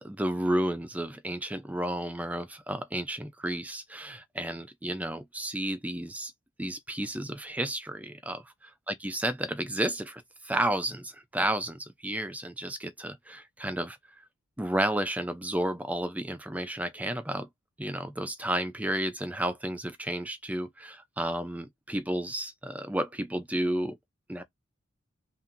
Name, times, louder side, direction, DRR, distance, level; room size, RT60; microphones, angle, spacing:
voice 1, 0.0-6.3 6.6-8.4 9.0-14.0 14.6-17.5 17.8-24.0 24.3-24.4, right 1 dB, 5° right, 0.5 m, -32 dB
5.6 x 2.5 x 2.5 m
head